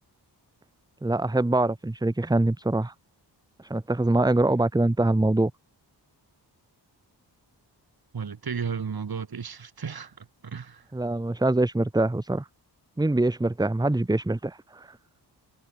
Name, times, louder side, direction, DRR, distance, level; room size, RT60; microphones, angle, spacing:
voice 1, 1.0-2.9 3.6-5.5 10.9-12.5 13.0-15.0, right 2 dB, 10° right, 1.0 m, -24 dB
voice 2, 8.1-10.9, right 6 dB, 60° right, 3.1 m, -34 dB
wide cardioid pair, 130°, 42 cm